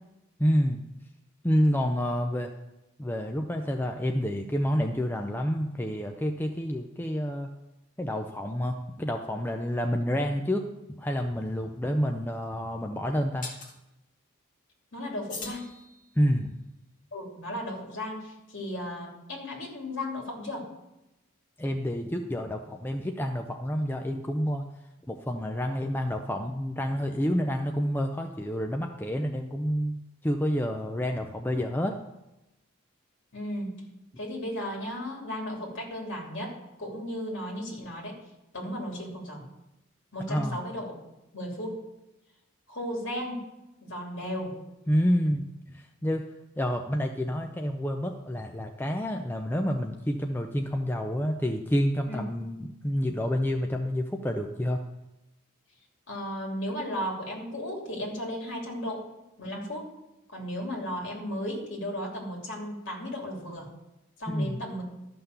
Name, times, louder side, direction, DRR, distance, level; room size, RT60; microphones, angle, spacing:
voice 1, 0.4-0.8 1.4-2.5 3.0-7.5 8.0-13.5 16.2-16.5 21.6-24.6 25.1-32.0 40.3-40.6 44.9-46.2 46.6-54.8 64.3-64.6, equal, 10° left, 3 dB, 0.5 m, -28 dB
sound 1, 11.4-11.6 13.4-13.8 15.3-16.4, left 4 dB, 35° left, 2.1 m, -41 dB
voice 2, 14.9-15.7 17.1-20.7 33.3-33.9 34.2-38.2 38.5-39.4 40.1-41.0 41.3-41.9 42.7-43.5 43.8-44.6 52.1-52.2 56.1-59.1 59.4-59.9 60.3-63.7 64.2-64.8, equal, 60° left, -1 dB, 3.1 m, -35 dB
12.5 x 5.8 x 6.8 m, 0.94 s
head